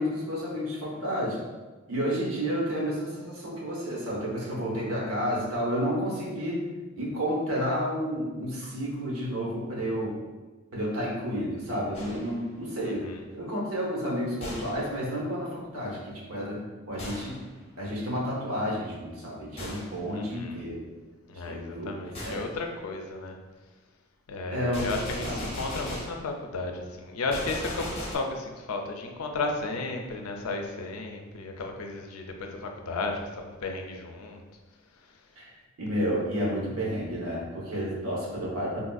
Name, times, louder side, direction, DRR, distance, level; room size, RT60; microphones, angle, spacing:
voice 1, 0.0-1.4 1.9-6.6 7.0-10.2 10.7-16.6 16.9-17.4 17.8-20.8 21.4-22.4 24.5-24.8 25.2-25.4 35.4-35.5 35.8-38.8, equal, 90° right, -4 dB, 1.0 m, -31 dB
Gunshot gunfire, 11.9-12.5 14.4-14.9 17.0-17.5 19.6-20.0 22.1-22.5 24.7-26.3 27.3-28.2, left 1 dB, 30° left, 0.6 m, -37 dB
voice 2, 12.8-13.2 20.1-20.6 21.3-23.4 24.3-34.4, left 3 dB, 85° left, 3 dB, 0.4 m, -34 dB
3.5 x 2.5 x 2.3 m, 1.3 s
head